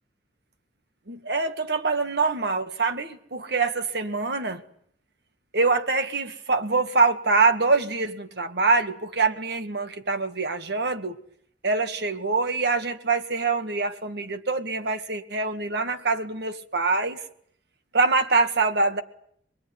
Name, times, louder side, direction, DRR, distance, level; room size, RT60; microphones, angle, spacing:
voice 1, 1.1-4.6 5.5-11.2 11.6-17.2 17.9-19.0, right 3 dB, 60° right, 2.0 m, -24 dB
26.0 x 21.5 x 9.7 m
head